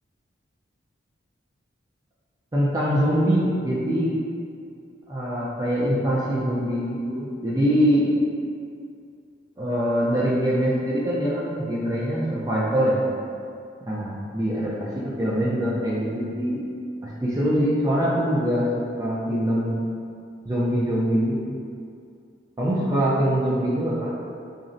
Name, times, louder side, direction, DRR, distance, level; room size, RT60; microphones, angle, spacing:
voice 1, 2.5-4.2 5.1-8.1 9.6-13.0 13.9-16.6 17.0-18.6 19.0-19.8 20.4-21.5 22.6-24.1, equal, 20° right, -7 dB, 0.3 m, -23 dB
3.8 x 2.1 x 2.5 m, 2.4 s
head